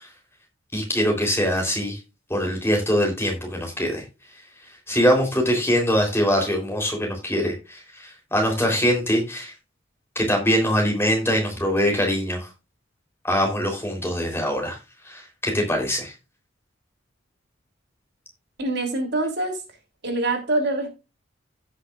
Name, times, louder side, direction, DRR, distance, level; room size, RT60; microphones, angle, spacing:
voice 1, 0.7-2.0 2.3-4.0 4.9-9.5 10.2-12.5 13.2-14.8 15.1-16.1, equal, 10° left, 3.4 m, -23 dB
voice 2, 18.6-19.6 20.0-20.9, right 2 dB, 55° right, 3.0 m, -24 dB
16.0 x 6.2 x 2.4 m
head